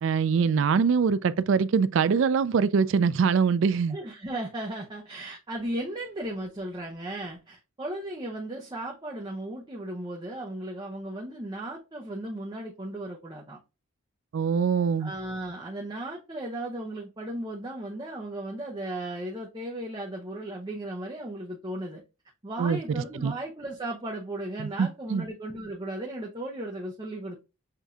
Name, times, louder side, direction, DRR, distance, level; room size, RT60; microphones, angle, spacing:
voice 1, 0.0-4.0 14.3-15.1 22.6-23.3 24.6-25.3, right 6 dB, 60° right, 0.3 m, -24 dB
voice 2, 3.9-13.6 15.0-22.0 22.4-27.4, right 1 dB, 20° right, 0.6 m, -36 dB
6.6 x 2.7 x 2.3 m
head